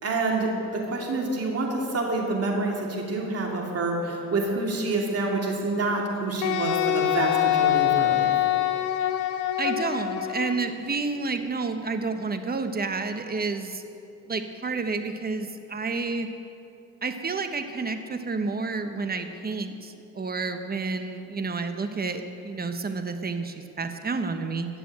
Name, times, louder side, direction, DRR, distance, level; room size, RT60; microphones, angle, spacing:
voice 1, 0.0-8.3, right 2 dB, 55° right, 0 dB, 2.8 m, -27 dB
Wind instrument woodwind instrument, 6.4-10.7, left 13 dB, 90° left, 0.8 m, -24 dB
voice 2, 9.6-13.8 14.3-16.3 17.0-24.7, right 4 dB, 30° right, 7 dB, 1.1 m, -30 dB
14.5 x 7.0 x 8.6 m, 2.7 s
cardioid pair, 90°, 30 cm